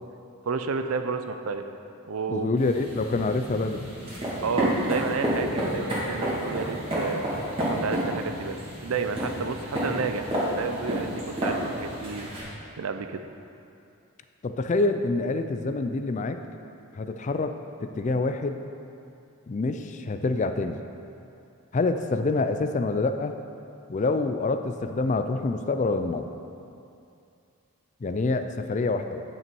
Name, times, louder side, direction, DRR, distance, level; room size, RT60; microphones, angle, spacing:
voice 1, 0.4-1.6 2.0-2.5 4.4-7.2 7.6-12.3 12.8-13.3, right 5 dB, 75° right, 8 dB, 0.5 m, -31 dB
voice 2, 2.3-3.9 14.4-16.4 17.0-17.6 17.8-18.6 19.5-20.8 21.7-23.3 23.9-26.2 28.0-29.2, left 3 dB, 35° left, 8 dB, 0.3 m, -26 dB
sound 1, 2.6-12.4, equal, 25° right, 2.0 m, -30 dB
9.6 x 6.0 x 4.6 m, 2.6 s
head